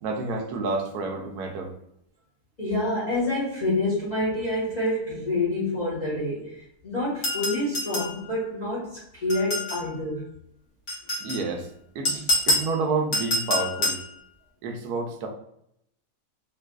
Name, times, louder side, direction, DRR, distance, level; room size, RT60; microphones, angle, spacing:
voice 1, 0.0-1.7 11.2-11.7 11.9-14.0 14.6-15.3, right 3 dB, 80° right, 3 dB, 1.1 m, -29 dB
voice 2, 2.6-10.3 12.1-12.2, left 1 dB, 30° left, -8 dB, 1.2 m, -27 dB
sound 1, 7.2-8.2 9.3-9.9 10.9-11.4 12.1-12.7 13.1-14.1, left 1 dB, 55° left, 1.2 m, -26 dB
3.7 x 2.5 x 2.2 m, 0.76 s
omnidirectional pair, 1.7 m